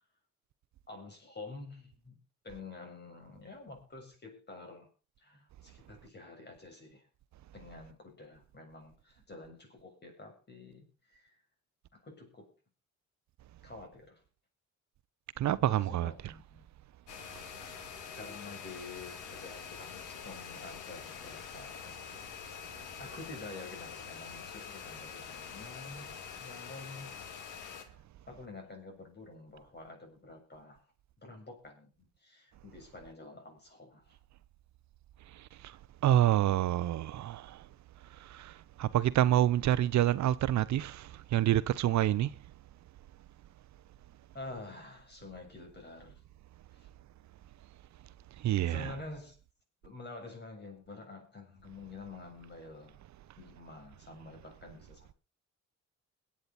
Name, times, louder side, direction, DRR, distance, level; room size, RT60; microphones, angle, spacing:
voice 1, 0.9-2.2 2.4-4.9 5.2-7.1 7.5-11.3 11.9-12.5 13.6-14.2 15.5-16.6 17.4-22.0 23.0-26.1 26.4-27.1 27.8-30.8 31.2-34.1 44.3-46.2 46.7-46.9 48.7-49.4 49.8-53.0 53.4-55.2, left 3 dB, 35° left, 7.2 m, -48 dB
voice 2, 15.4-16.3 35.4-35.7 36.0-37.6 38.2-42.3 48.4-48.9, right 12 dB, 65° right, 0.7 m, -28 dB
sound 1, 17.1-27.8, left 7 dB, 85° left, 2.2 m, -45 dB
22.0 x 8.8 x 4.2 m
cardioid pair, 90°, 30 cm